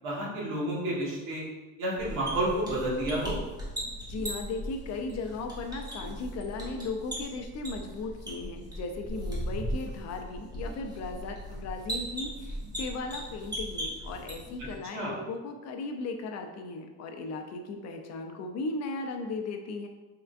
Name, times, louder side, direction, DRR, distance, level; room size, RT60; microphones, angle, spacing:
voice 1, 0.0-1.4 1.8-3.4 14.9-15.1, right 1 dB, 80° right, -5 dB, 1.4 m, -30 dB
sound 1, 2.0-14.7, equal, 10° right, 0.9 m, -38 dB
voice 2, 4.0-19.9, left 3 dB, 50° left, 5 dB, 0.5 m, -37 dB
3.6 x 3.4 x 2.4 m, 1.2 s
cardioid pair, 145°, 33 cm